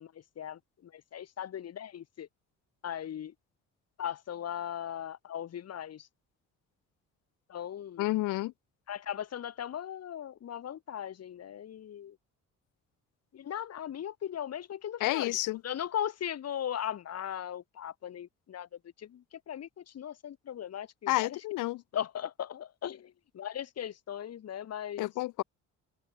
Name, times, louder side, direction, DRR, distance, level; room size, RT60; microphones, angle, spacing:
voice 1, 0.0-2.3 2.8-3.3 4.0-6.1 7.5-8.1 8.9-12.2 13.3-15.4 15.6-18.7 19.0-21.4 21.9-25.1, left 10 dB, 55° left, 1.6 m, -38 dB
voice 2, 8.0-8.5 15.0-15.6 21.1-21.8 25.0-25.4, left 18 dB, 90° left, 0.8 m, -30 dB
cardioid pair, 90°, 30 cm